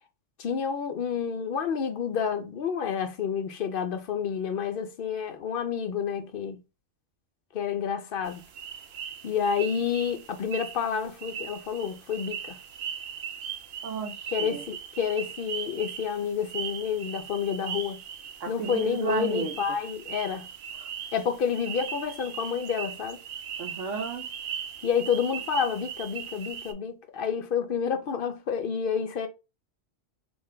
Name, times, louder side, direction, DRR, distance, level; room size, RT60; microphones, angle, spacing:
voice 1, 0.4-6.6 7.5-8.4 9.2-12.6 14.3-18.0 18.5-20.5 21.1-23.2 24.8-29.3, left 7 dB, 60° left, 0.6 m, -29 dB
sound 1, 8.2-26.7, right 8 dB, 60° right, 0.8 m, -39 dB
voice 2, 13.8-14.6 18.4-19.6 20.8-20.9 23.6-24.3, right 5 dB, 85° right, 1.0 m, -33 dB
3.2 x 2.6 x 3.6 m
omnidirectional pair, 1.2 m